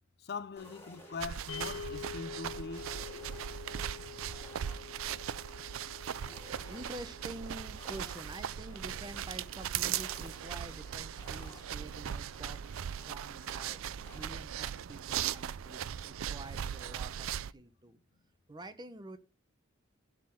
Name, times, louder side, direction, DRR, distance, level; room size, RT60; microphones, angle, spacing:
voice 1, 0.2-2.9, left 4 dB, 55° left, 0.5 m, -42 dB
sound 1, 0.6-14.3, left 1 dB, 10° left, 2.6 m, -57 dB
sound 2, 1.2-17.5, right 9 dB, 80° right, 0.4 m, -39 dB
sound 3, 1.5-11.8, left 7 dB, 75° left, 0.9 m, -49 dB
voice 2, 6.7-12.6 13.0-13.8 14.1-18.0 18.5-19.2, right 1 dB, 20° right, 0.8 m, -48 dB
11.5 x 3.8 x 7.5 m
head